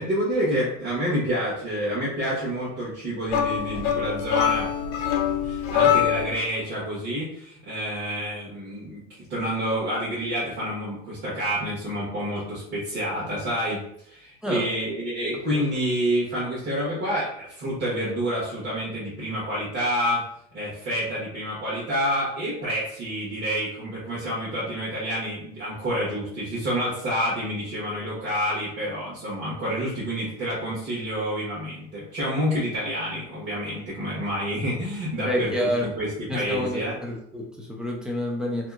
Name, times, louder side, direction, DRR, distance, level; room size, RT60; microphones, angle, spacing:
voice 1, 0.0-4.7 5.4-20.2 20.5-37.0, equal, 40° right, -8 dB, 1.2 m, -28 dB
sound 1, 3.3-6.4, left 9 dB, 50° left, 0.6 m, -24 dB
voice 2, 35.2-35.9 36.3-38.7, equal, 5° right, -1 dB, 0.4 m, -28 dB
2.8 x 2.7 x 2.4 m, 0.72 s
supercardioid pair, 140°, 29 cm